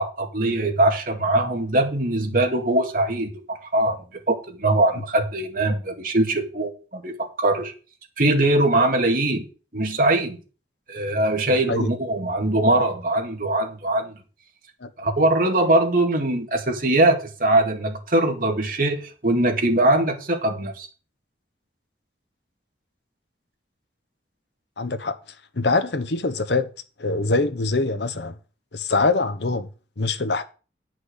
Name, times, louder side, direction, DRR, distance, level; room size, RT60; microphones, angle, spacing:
voice 1, 0.0-4.0 4.3-7.7 8.2-9.4 9.7-10.4 10.9-14.1 15.0-20.9, right 2 dB, 50° right, 2.0 m, -21 dB
voice 2, 24.8-25.1 25.6-26.7 27.0-28.3 28.7-29.7 30.0-30.4, left 3 dB, 75° left, 1.0 m, -23 dB
9.8 x 6.1 x 6.6 m
head